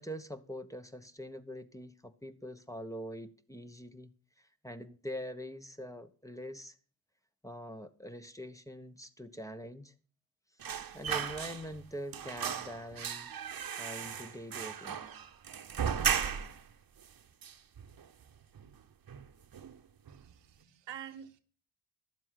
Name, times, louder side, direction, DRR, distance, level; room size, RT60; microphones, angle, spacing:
voice 1, 0.0-6.7 7.4-9.9 10.9-13.3 13.8-15.0, equal, 5° left, 1.1 m, -44 dB
sound 1, 10.6-11.9 12.1-16.7 17.0-17.1 17.4-18.2 18.6-18.8 19.1-19.8 20.1-20.2, right 7 dB, 50° right, 1.1 m, -36 dB
voice 2, 20.1-21.4, right 10 dB, 75° right, 1.0 m, -47 dB
11.5 x 7.5 x 5.9 m
supercardioid pair, 45°, 44 cm